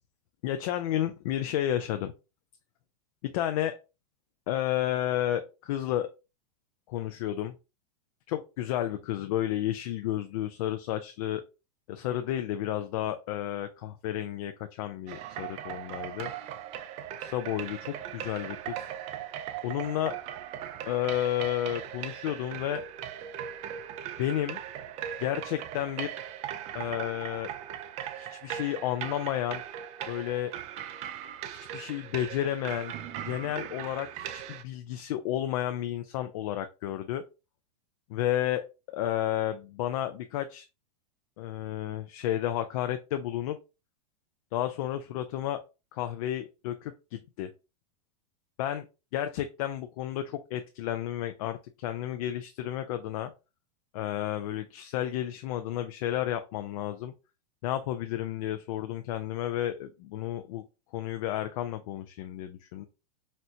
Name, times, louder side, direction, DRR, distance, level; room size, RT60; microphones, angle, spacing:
voice 1, 0.4-2.1 3.2-3.8 4.5-6.1 6.9-7.5 8.3-11.4 11.9-16.3 17.2-18.9 19.6-20.2 20.9-22.8 24.2-24.6 25.2-26.1 26.7-27.5 28.1-29.6 30.1-30.5 31.5-32.9 33.2-37.2 38.1-38.6 38.9-40.7 41.4-43.6 44.5-45.6 45.9-47.5 48.6-48.9 49.1-53.3 53.9-57.1 57.6-60.6 60.9-62.8, left 12 dB, 60° left, 8 dB, 0.4 m, -32 dB
sound 1, 15.1-34.6, right 10 dB, 35° right, 0.4 m, -39 dB
4.2 x 2.1 x 2.6 m, 0.29 s
hypercardioid pair, 125°, 20 cm